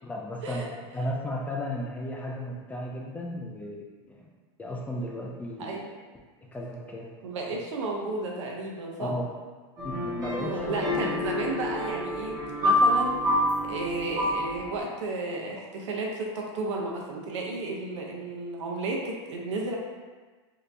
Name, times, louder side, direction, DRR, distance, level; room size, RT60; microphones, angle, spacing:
voice 1, 0.0-3.8 4.1-4.3 4.6-5.8 6.5-7.2 9.0-9.2 9.8-10.6 10.9-11.1, left 1 dB, 10° left, -2 dB, 0.3 m, -34 dB
voice 2, 7.2-9.1 10.4-13.4 13.7-19.8, right 2 dB, 90° right, -1 dB, 0.7 m, -33 dB
sound 1, 9.8-14.8, left 1 dB, 25° right, 0.8 m, -27 dB
3.3 x 2.8 x 2.6 m, 1.4 s
supercardioid pair, 140°, 15 cm